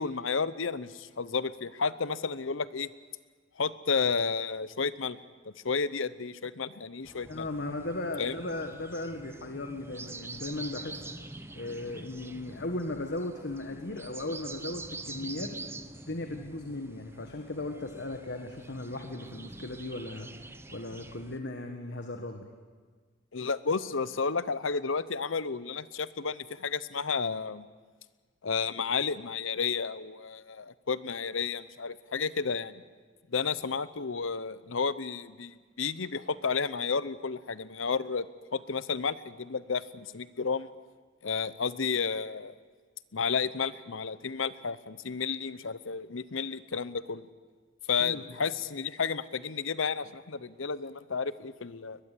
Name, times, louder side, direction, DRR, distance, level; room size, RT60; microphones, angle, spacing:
voice 1, 0.0-2.9 3.6-5.2 5.6-7.5 8.2-8.3 23.3-27.6 28.4-32.8 33.3-38.3 38.5-40.7 41.2-42.5 43.1-47.3 47.9-52.0, left 5 dB, 75° left, 16 dB, 0.8 m, -32 dB
sound 1, 7.1-21.4, right 2 dB, 10° right, 0.8 m, -45 dB
voice 2, 7.3-11.0 11.5-15.5 16.1-20.3 20.7-22.5 48.0-48.2, left 2 dB, 60° left, 5 dB, 1.6 m, -37 dB
21.5 x 21.5 x 8.5 m, 1.5 s
head